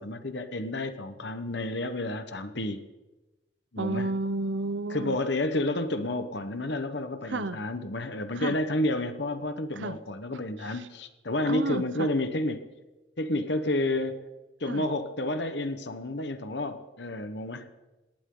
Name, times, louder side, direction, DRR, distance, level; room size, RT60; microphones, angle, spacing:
voice 1, 0.0-2.9 3.7-4.1 4.9-12.6 13.2-14.2 14.6-17.7, left 1 dB, 65° left, 9 dB, 1.2 m, -30 dB
voice 2, 3.8-5.2 7.3-7.6 8.3-8.6 9.7-10.0 10.6-10.9 11.4-12.1 14.7-14.9, right 2 dB, 70° right, 13 dB, 0.7 m, -31 dB
20.0 x 18.5 x 3.9 m, 1.1 s
head